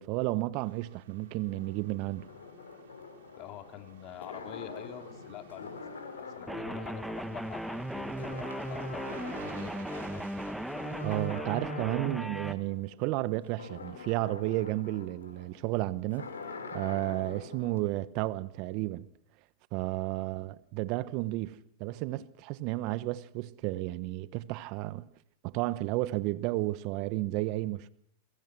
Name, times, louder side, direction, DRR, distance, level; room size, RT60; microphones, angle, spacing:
voice 1, 0.0-2.3 11.0-16.3 16.7-19.1 19.7-25.1 25.4-27.9, right 18 dB, 50° right, 1.1 m, -32 dB
sound 1, 0.6-12.4 12.8-12.9, right 7 dB, 75° right, 6.2 m, -56 dB
sound 2, 1.5-7.9 8.2-10.2 10.6-17.8, left 4 dB, 80° left, 5.2 m, -45 dB
voice 2, 3.4-10.6 20.1-20.3, left 10 dB, 45° left, 2.7 m, -46 dB
sound 3, 6.5-12.5, right 1 dB, ahead, 1.6 m, -37 dB
28.5 x 23.5 x 6.1 m
hypercardioid pair, 100°, 0 cm